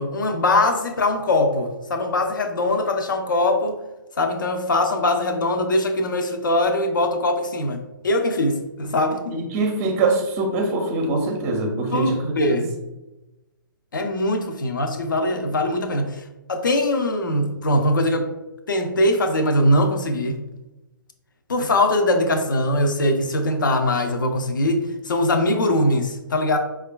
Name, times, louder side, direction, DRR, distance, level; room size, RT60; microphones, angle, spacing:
voice 1, 0.0-3.8 4.2-9.4 11.9-12.7 13.9-16.2 16.5-18.3 18.7-20.4 21.5-26.6, left 1 dB, 65° left, 5 dB, 0.5 m, -21 dB
voice 2, 9.3-12.6, right 3 dB, 20° right, 2 dB, 0.5 m, -23 dB
4.7 x 2.3 x 2.2 m, 1.0 s
figure-of-eight pair, 130°, 12 cm